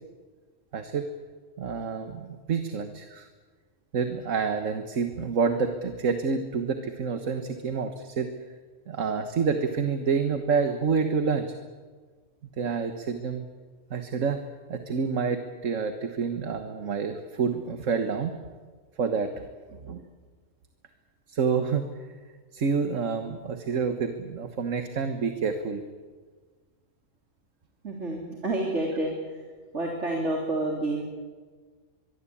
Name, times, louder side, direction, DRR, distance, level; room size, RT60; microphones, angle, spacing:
voice 1, 0.7-1.0 1.6-3.3 3.9-8.3 8.9-11.6 12.6-13.5 13.9-14.4 14.7-18.4 19.0-20.0 21.3-21.8 22.5-25.8, right 5 dB, 80° right, 7 dB, 1.8 m, -28 dB
voice 2, 27.8-29.5 29.7-31.0, right 2 dB, 65° right, 0 dB, 3.7 m, -29 dB
24.0 x 23.0 x 8.7 m, 1.5 s
omnidirectional pair, 1.3 m